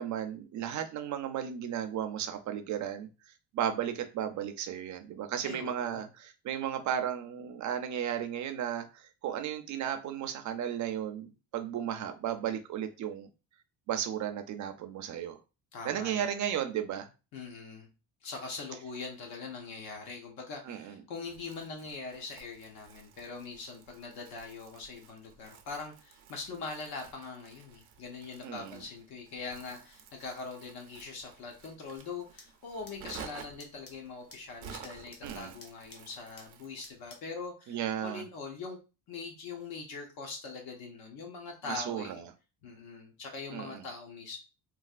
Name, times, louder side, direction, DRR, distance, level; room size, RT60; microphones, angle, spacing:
voice 1, 0.0-3.1 3.5-13.3 13.9-15.4 15.8-17.1 20.7-21.0 28.4-28.8 35.2-35.5 37.7-38.2 41.7-42.3 43.5-43.9, right 9 dB, 50° right, 0.4 m, -34 dB
voice 2, 5.4-6.1 15.7-16.3 17.3-17.9 18.2-38.8 39.1-42.2 42.6-44.4, left 4 dB, 65° left, 0.8 m, -42 dB
Crumpling crinkling, 21.2-37.0, right 7 dB, 90° right, 0.6 m, -52 dB
sound 1, 31.9-37.4, left 3 dB, 35° left, 0.7 m, -57 dB
3.2 x 2.3 x 2.4 m
cardioid pair, 160°, 39 cm